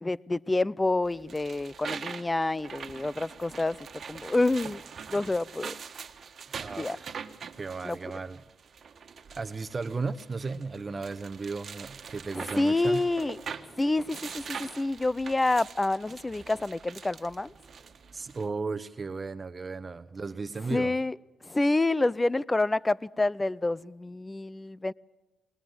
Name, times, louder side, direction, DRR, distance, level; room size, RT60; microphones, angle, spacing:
voice 1, 0.0-3.8 4.1-4.8 5.1-5.7 6.8-7.0 7.8-8.0 12.3-13.4 13.8-17.5 20.7-21.2 21.4-24.9, left 2 dB, 20° left, 0.6 m, -28 dB
sound 1, 1.0-18.5, right 6 dB, 55° right, 1.6 m, -43 dB
voice 2, 6.6-7.1 7.6-8.4 9.3-13.0 18.1-21.0, right 4 dB, 35° right, 1.0 m, -35 dB
21.0 x 20.5 x 7.9 m
supercardioid pair, 50°, 0 cm